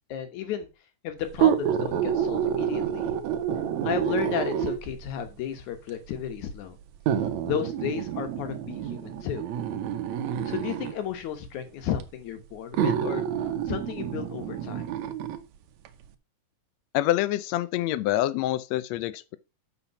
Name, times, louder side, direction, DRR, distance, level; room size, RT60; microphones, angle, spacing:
voice 1, 0.1-0.7 1.0-3.1 3.8-6.8 7.4-9.4 10.5-13.2 13.7-14.9, left 9 dB, 70° left, 2.6 m, -33 dB
sound 1, 1.3-5.0 5.9-6.0 7.1-11.0 12.0-12.1 12.7-15.4 15.8-15.9, right 9 dB, 70° right, 2.0 m, -28 dB
voice 2, 16.9-19.4, left 14 dB, 85° left, 1.5 m, -26 dB
7.0 x 5.8 x 5.7 m
omnidirectional pair, 3.8 m